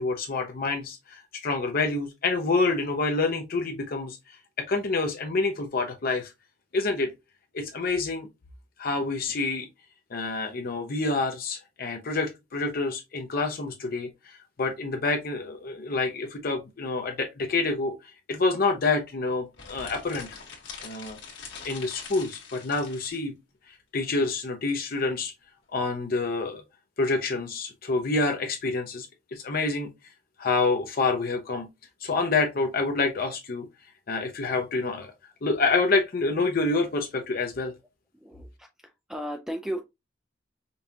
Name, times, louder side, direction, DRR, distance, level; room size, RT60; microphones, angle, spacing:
voice 1, 0.0-6.3 6.7-7.1 7.5-8.3 8.8-9.7 10.1-17.9 18.3-20.3 20.8-21.2 21.6-23.3 23.7-25.3 25.7-26.6 27.0-29.9 30.4-31.7 32.0-33.7 34.1-35.1 35.4-37.8, left 3 dB, 55° left, 0.6 m, -27 dB
sound 1, 19.5-23.2, left 5 dB, 75° left, 1.5 m, -43 dB
voice 2, 38.2-38.7 39.1-39.8, equal, 5° right, 0.3 m, -34 dB
5.3 x 2.4 x 2.7 m
head